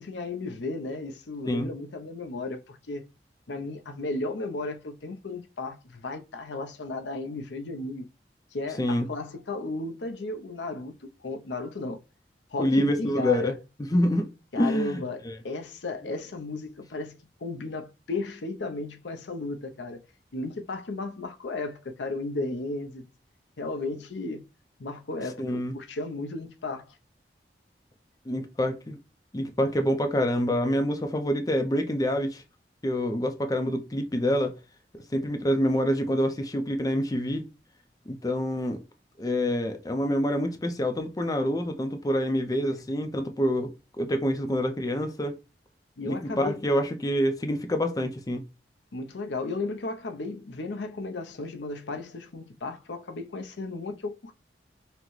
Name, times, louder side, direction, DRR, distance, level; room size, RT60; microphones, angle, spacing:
voice 1, 0.0-3.0 3.5-8.1 8.5-10.9 11.2-12.0 12.5-13.6 14.5-20.0 20.3-23.0 23.6-24.5 24.8-26.8 42.7-42.8 46.0-46.6 48.9-54.3, left 2 dB, 85° left, 0.6 m, -34 dB
voice 2, 12.6-13.5 13.9-14.3 14.6-15.3 25.4-25.7 28.3-29.0 29.3-32.4 32.8-34.5 35.1-37.4 38.1-38.8 39.2-43.7 44.0-45.4 46.1-48.4, equal, 20° left, 0.5 m, -26 dB
5.8 x 2.1 x 3.1 m
head